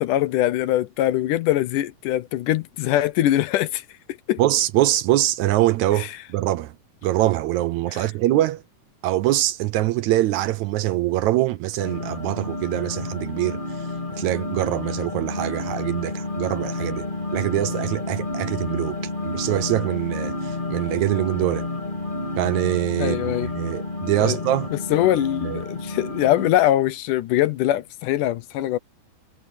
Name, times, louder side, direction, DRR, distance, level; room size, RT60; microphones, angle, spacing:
voice 1, 0.0-3.9 4.3-4.4 6.0-6.2 7.9-8.1 23.0-23.5 24.2-24.4 24.7-28.8, left 13 dB, 80° left, 2.4 m, -22 dB
voice 2, 4.4-6.7 7.0-8.6 9.0-13.9 14.2-19.0 19.2-21.7 22.4-24.7 25.4-25.6, right 15 dB, 75° right, 1.8 m, -23 dB
sound 1, 11.8-26.5, left 2 dB, 15° left, 3.0 m, -30 dB
omnidirectional pair, 3.7 m